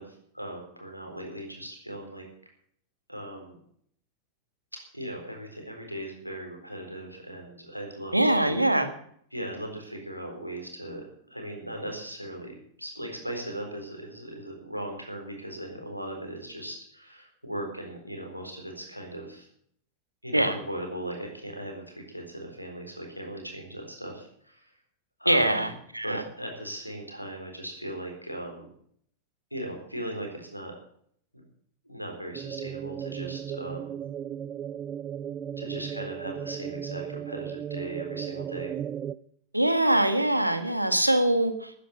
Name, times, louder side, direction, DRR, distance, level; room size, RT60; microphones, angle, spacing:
voice 1, 0.0-2.2 3.1-3.6 4.9-8.1 8.4-8.7 9.3-19.5 20.2-24.7 25.2-25.7 26.0-28.7 29.5-30.7 31.9-34.0 35.6-38.7, right 1 dB, 90° left, 3 dB, 4.0 m, -38 dB
voice 2, 8.1-8.9 20.3-20.6 25.3-26.2 39.5-41.7, right 1 dB, 85° right, 9 dB, 1.5 m, -23 dB
sound 1, 32.3-39.2, right 9 dB, 25° right, 0.5 m, -36 dB
13.5 x 10.0 x 6.9 m, 0.64 s
figure-of-eight pair, 90°, 0 cm